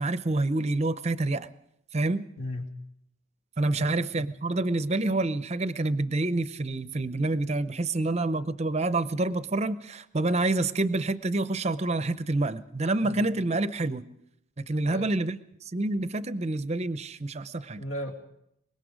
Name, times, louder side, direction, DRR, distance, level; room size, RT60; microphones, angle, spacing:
voice 1, 0.0-1.5 1.9-2.3 3.6-14.1 14.6-15.4 15.7-17.8, right 2 dB, 30° right, 13 dB, 0.7 m, -27 dB
voice 2, 2.4-2.7 3.8-4.3 13.0-13.2 14.8-15.1 17.8-18.1, left 1 dB, 70° left, 2 dB, 2.7 m, -36 dB
24.0 x 21.0 x 5.1 m, 0.79 s
head